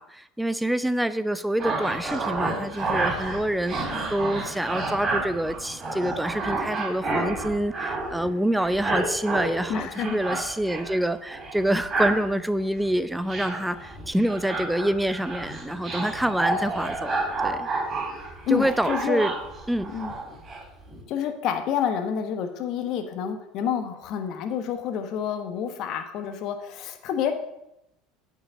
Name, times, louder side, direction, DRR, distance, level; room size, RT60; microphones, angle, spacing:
voice 1, 0.0-17.2 17.4-17.7 18.5-19.3 19.7-19.9, right 1 dB, 5° right, 12 dB, 0.6 m, -26 dB
sound 1, 1.6-8.3 8.6-11.0 11.3-12.3 12.8-12.9 13.3-20.6 20.9-21.0, right 2 dB, 30° right, 3.4 m, -30 dB
voice 2, 9.7-10.4 18.4-19.2 19.9-20.1 21.1-27.3, left 8 dB, 55° left, 6 dB, 1.1 m, -28 dB
8.6 x 5.4 x 7.0 m, 0.84 s
hypercardioid pair, 80°, 0 cm